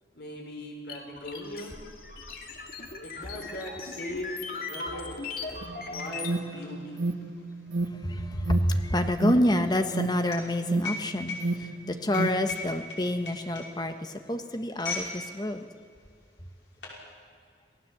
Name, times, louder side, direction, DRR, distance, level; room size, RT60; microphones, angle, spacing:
voice 1, 0.1-1.8 3.0-5.2 5.8-7.0, equal, 65° left, 1 dB, 5.1 m, -39 dB
sound 1, 0.9-6.4, left 4 dB, 50° left, 2.4 m, -38 dB
sound 2, 4.8-4.9 5.2-15.2 15.5-15.7 16.4-17.0, left 3 dB, 85° left, 6.0 m, -40 dB
Alarm, 5.6-12.3, right 2 dB, 85° right, 1.4 m, -32 dB
voice 2, 8.0-15.7, left 1 dB, 20° left, 7 dB, 1.2 m, -28 dB
28.0 x 17.0 x 7.8 m, 2.3 s
head